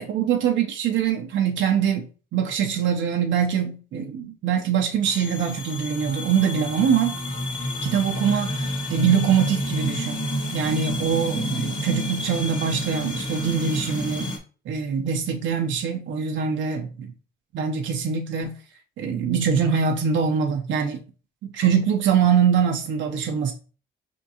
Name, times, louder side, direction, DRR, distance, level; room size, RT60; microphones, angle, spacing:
voice 1, 0.0-7.2 7.8-10.2 10.5-14.3 14.7-17.1 17.5-18.5 19.0-21.0 21.4-23.5, right 7 dB, 70° right, 0.7 m, -23 dB
sound 1, 5.0-14.4, left 1 dB, 20° left, 1.4 m, -29 dB
5.1 x 3.6 x 2.8 m
cardioid pair, 90°, 20 cm